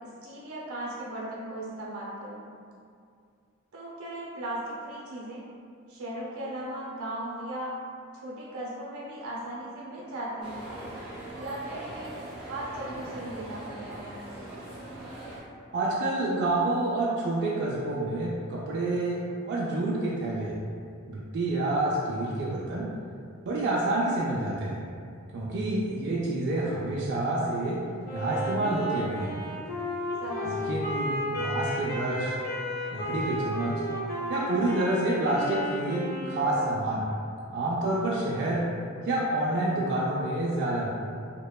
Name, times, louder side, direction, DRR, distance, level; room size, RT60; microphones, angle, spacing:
voice 1, 0.0-2.5 3.7-5.4 5.9-7.7 8.1-10.7 11.3-12.1 12.4-14.2 30.2-30.7, right 1 dB, 85° right, -5 dB, 0.7 m, -37 dB
sound 1, 10.4-15.4, right 1 dB, 5° right, 0.7 m, -41 dB
voice 2, 15.7-20.6 21.1-22.9 23.4-24.8 25.3-27.8 28.1-29.4 30.5-32.4 32.9-33.8 34.3-37.0 37.5-38.6 39.0-40.9, right 2 dB, 55° right, -5 dB, 0.3 m, -28 dB
Wind instrument woodwind instrument, 28.0-36.9, left 1 dB, 50° left, 0.5 m, -34 dB
2.9 x 2.1 x 2.2 m, 2.3 s
head